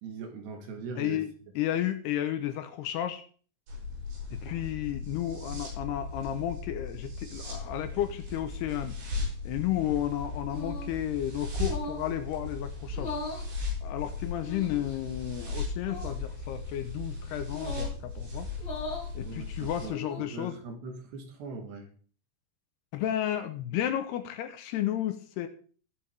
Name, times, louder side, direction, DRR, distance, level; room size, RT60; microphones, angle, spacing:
voice 1, 0.0-1.2 19.2-21.9, right 4 dB, 75° right, 3 dB, 3.8 m, -41 dB
voice 2, 1.0-3.2 4.3-9.0 9.4-13.2 13.8-18.5 19.2-20.6 22.9-25.5, left 12 dB, 80° left, 9 dB, 2.7 m, -32 dB
sound 1, 3.7-19.9, left 3 dB, 90° right, 8.5 m, -37 dB
sound 2, 10.5-11.0 11.6-12.1 12.9-13.5 14.4-15.0 15.8-16.2 17.5-18.0 18.6-19.1 19.8-20.4, left 3 dB, 40° left, 5.1 m, -39 dB
20.0 x 6.9 x 3.5 m, 0.42 s
omnidirectional pair, 5.1 m